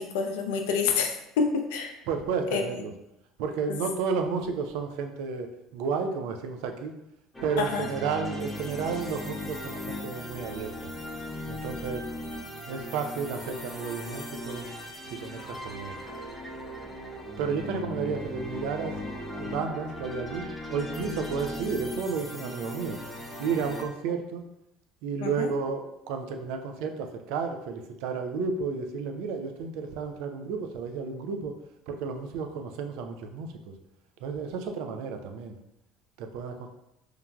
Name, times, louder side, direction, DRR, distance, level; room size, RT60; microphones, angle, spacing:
voice 1, 0.0-1.9 2.5-2.6 3.7-3.8 7.6-7.9 25.2-25.5, left 5 dB, 85° left, 3 dB, 0.4 m, -28 dB
voice 2, 2.1-2.9 3.4-7.0 7.4-10.9 11.5-12.0 12.7-14.6 15.1-16.0 17.4-19.0 19.4-23.0 23.4-24.4 25.0-31.5 31.9-33.7 34.2-35.6 36.2-36.7, right 5 dB, 75° right, 5 dB, 0.3 m, -32 dB
sound 1, 7.3-23.8, left 1 dB, 15° left, 0.7 m, -38 dB
3.1 x 2.3 x 2.2 m, 0.84 s
supercardioid pair, 80°, 0 cm